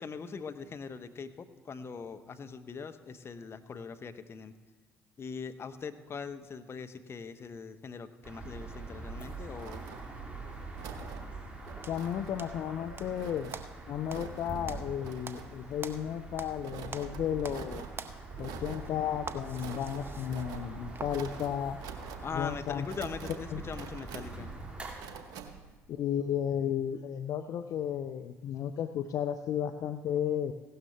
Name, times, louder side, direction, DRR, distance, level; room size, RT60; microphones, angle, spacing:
voice 1, 0.0-4.5 5.2-9.8 22.2-24.5, left 5 dB, 35° left, 9 dB, 0.8 m, -41 dB
sound 1, 8.2-24.9, right 3 dB, 15° right, 2.9 m, -44 dB
sound 2, 9.0-25.8, right 6 dB, 65° right, 1.0 m, -47 dB
sound 3, 11.8-13.1 13.5-16.6 16.9-17.7 17.9-21.2, right 4 dB, 35° right, 0.9 m, -45 dB
voice 2, 11.9-13.5 13.9-17.9 18.4-21.8 22.3-22.9 23.5-23.6 25.9-30.5, left 9 dB, 55° left, 10 dB, 0.5 m, -33 dB
16.0 x 12.5 x 3.3 m, 1.3 s
hypercardioid pair, 50°, 7 cm